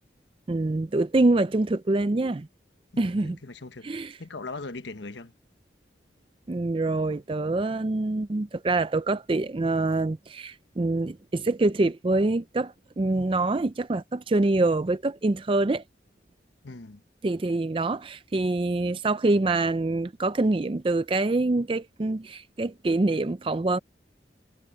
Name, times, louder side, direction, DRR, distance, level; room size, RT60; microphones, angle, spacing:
voice 1, 0.5-2.5 3.0-3.4 3.8-4.2 6.5-15.8 17.2-23.8, right 2 dB, 30° right, 0.4 m, -25 dB
voice 2, 2.9-5.3 16.6-17.0, left 3 dB, 85° left, 1.2 m, -40 dB
head